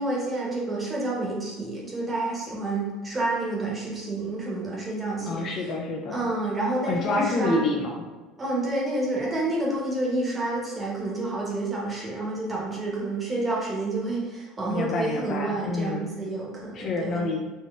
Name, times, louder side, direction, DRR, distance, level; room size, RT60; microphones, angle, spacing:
voice 1, 0.0-5.7 6.1-7.6 8.4-17.2, right 2 dB, 20° right, -4 dB, 1.0 m, -29 dB
voice 2, 5.2-6.2 6.9-8.0 14.7-16.1 16.7-17.4, left 2 dB, 45° left, 1 dB, 0.4 m, -27 dB
3.7 x 2.1 x 2.5 m, 1.2 s
supercardioid pair, 115°, 0 cm